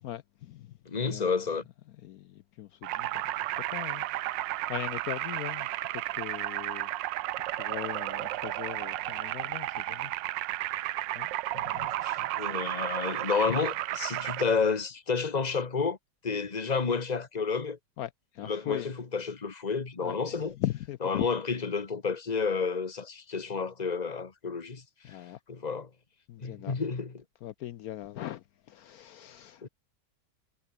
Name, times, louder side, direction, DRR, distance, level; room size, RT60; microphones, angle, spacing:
voice 1, 0.0-0.7 1.0-1.4 2.0-3.3 3.7-4.1 4.7-6.9 7.6-10.1 11.1-11.9 12.2-12.3 13.5-13.6 18.0-18.9 20.0-21.3 25.0-25.4 26.3-26.8 27.4-29.7, left 13 dB, 70° left, 0.9 m, -39 dB
voice 2, 0.8-1.7 11.8-16.0 16.2-17.8 18.4-20.5 21.0-25.2 25.5-25.9 26.4-27.2 29.6-29.7, left 5 dB, 25° left, 1.6 m, -30 dB
sound 1, 2.8-14.4, right 16 dB, 90° right, 1.3 m, -33 dB
omnidirectional pair, 1.9 m